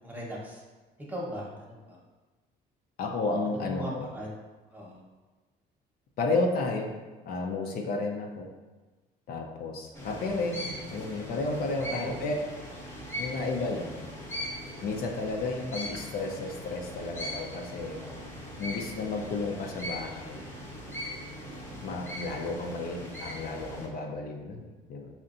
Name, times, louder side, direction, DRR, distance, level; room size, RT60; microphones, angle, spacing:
voice 1, 0.0-0.6 1.1-2.0 3.4-4.4 4.7-5.0 11.7-12.2 18.0-18.4 21.4-21.9, equal, 10° right, -4 dB, 1.0 m, -39 dB
voice 2, 3.0-4.1 6.2-6.9 7.3-8.5 9.3-12.3 13.2-14.0 14.8-18.0 18.6-20.5 21.8-25.1, left 3 dB, 65° left, 1 dB, 0.6 m, -32 dB
sound 1, 9.9-23.9, equal, 15° left, 0.8 m, -40 dB
5.6 x 2.5 x 2.6 m, 1.3 s
cardioid pair, 110°, 17 cm